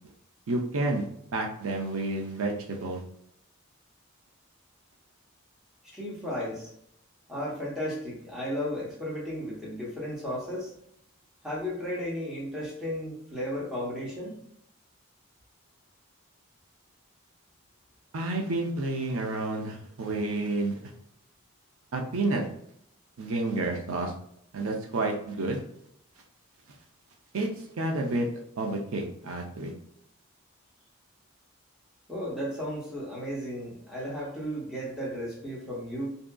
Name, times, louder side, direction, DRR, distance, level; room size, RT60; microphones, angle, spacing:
voice 1, 0.5-1.0 1.3-3.0 18.1-20.8 21.9-22.5 23.2-24.1 24.5-25.6 27.3-27.5 27.8-28.3 28.6-29.7, right 2 dB, 80° right, 1 dB, 0.5 m, -30 dB
voice 2, 5.9-6.7 7.3-10.7 11.4-14.4 32.1-36.1, equal, ahead, -6 dB, 0.8 m, -34 dB
2.6 x 2.4 x 2.2 m, 0.73 s
head